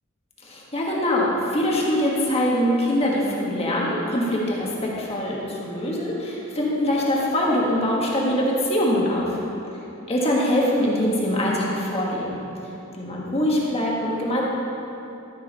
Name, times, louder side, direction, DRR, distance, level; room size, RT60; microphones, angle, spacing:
voice 1, 0.4-9.3 10.1-12.4 13.0-14.4, left 1 dB, 30° left, -4 dB, 1.4 m, -23 dB
12.5 x 6.1 x 4.1 m, 2.9 s
head